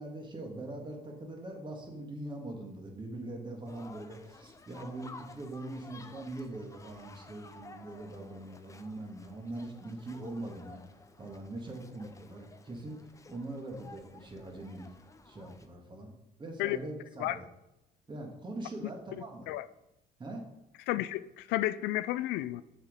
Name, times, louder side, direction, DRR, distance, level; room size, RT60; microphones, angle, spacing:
voice 1, 0.0-10.8 11.2-13.0 13.3-14.9 15.3-16.1 16.4-17.4 18.1-19.5 20.2-20.4, right 2 dB, 30° right, 2.0 m, -42 dB
sound 1, 3.7-15.7, left 3 dB, 20° left, 0.7 m, -53 dB
voice 2, 20.9-22.6, left 15 dB, 90° left, 0.4 m, -31 dB
7.2 x 6.1 x 5.2 m
cardioid pair, 110°, 17 cm